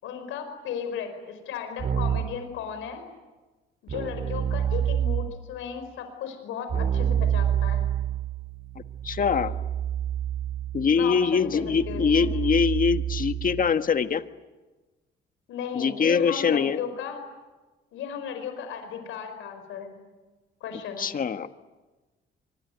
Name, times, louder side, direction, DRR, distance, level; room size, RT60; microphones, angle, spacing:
voice 1, 0.0-3.0 3.8-7.8 10.9-12.3 15.5-17.2 17.9-19.9 20.6-21.1, left 7 dB, 90° left, 7 dB, 5.0 m, -35 dB
Keyboard (musical), 1.8-2.4 3.9-5.5 6.7-13.7, right 9 dB, 50° right, 3.2 m, -28 dB
voice 2, 9.0-9.5 10.7-14.2 15.7-16.8 21.0-21.5, left 6 dB, 45° left, 9 dB, 1.5 m, -23 dB
25.5 x 23.5 x 9.3 m, 1.2 s
cardioid pair, 90°, 20 cm